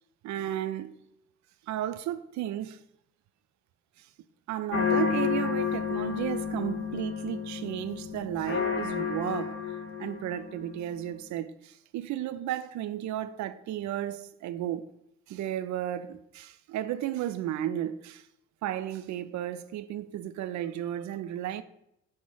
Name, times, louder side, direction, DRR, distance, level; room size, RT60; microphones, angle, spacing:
voice 1, 0.2-1.0 1.7-2.8 4.0-4.1 4.5-14.9 15.3-18.3 18.6-21.6, right 12 dB, 50° right, 0.4 m, -34 dB
sound 1, 4.7-10.8, left 7 dB, 35° left, 0.7 m, -31 dB
5.1 x 2.1 x 4.8 m
hypercardioid pair, 45°, 37 cm